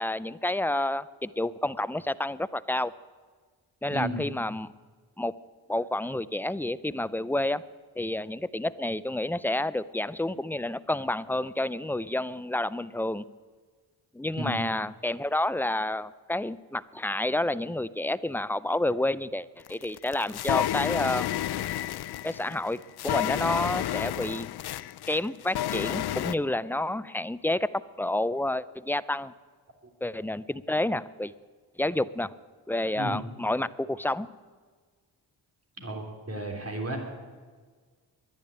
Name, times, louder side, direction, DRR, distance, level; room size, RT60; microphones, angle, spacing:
voice 1, 0.0-2.9 3.8-4.7 5.2-5.3 5.7-7.6 8.0-13.2 14.1-21.3 22.2-24.5 25.1-29.3 30.0-31.3 31.8-32.3 32.7-34.3, left 1 dB, 5° left, 17 dB, 0.4 m, -29 dB
voice 2, 3.9-4.2 14.4-14.6 33.0-33.2 35.8-37.0, right 1 dB, 35° right, 2 dB, 3.4 m, -33 dB
sound 1, 19.7-26.3, left 12 dB, 60° left, 0.5 m, -31 dB
10.5 x 10.5 x 9.6 m, 1.5 s
cardioid pair, 50°, 43 cm